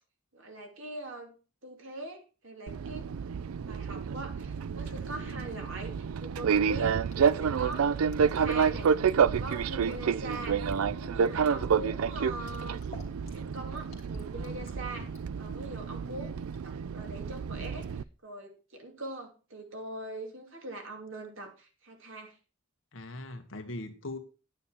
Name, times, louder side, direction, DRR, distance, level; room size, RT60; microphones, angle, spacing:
voice 1, 0.3-1.4 1.6-3.1 3.6-8.9 9.2-12.8 13.3-15.1 15.4-22.3, right 2 dB, 70° right, 3 dB, 2.9 m, -42 dB
Fixed-wing aircraft airplane, 2.7-18.0, right 6 dB, 85° right, 0.4 m, -29 dB
voice 2, 4.8-5.5 22.9-24.2, left 2 dB, 65° left, 6 dB, 1.6 m, -41 dB
Fill (with liquid), 7.1-15.2 16.5-16.6, equal, 30° left, 2.6 m, -45 dB
10.0 x 9.1 x 4.4 m, 0.33 s
head